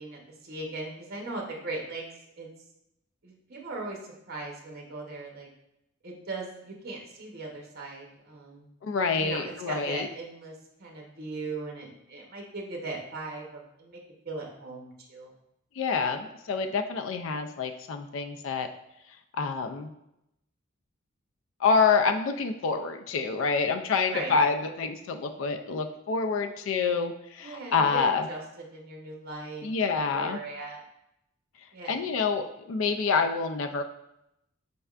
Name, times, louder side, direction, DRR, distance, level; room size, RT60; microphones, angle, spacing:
voice 1, 0.0-2.1 2.4-2.5 3.2-5.5 6.0-8.7 9.2-10.5 10.8-14.0 14.2-15.3 24.0-24.3 27.4-28.4 28.7-29.6 30.1-30.8 31.7-32.0, right 3 dB, 50° right, 0 dB, 0.8 m, -38 dB
voice 2, 8.8-10.1 15.8-18.7 19.3-19.9 21.6-28.3 29.6-30.4 31.9-33.8, left 5 dB, 75° left, 6 dB, 0.4 m, -27 dB
5.3 x 3.3 x 2.4 m, 0.83 s
head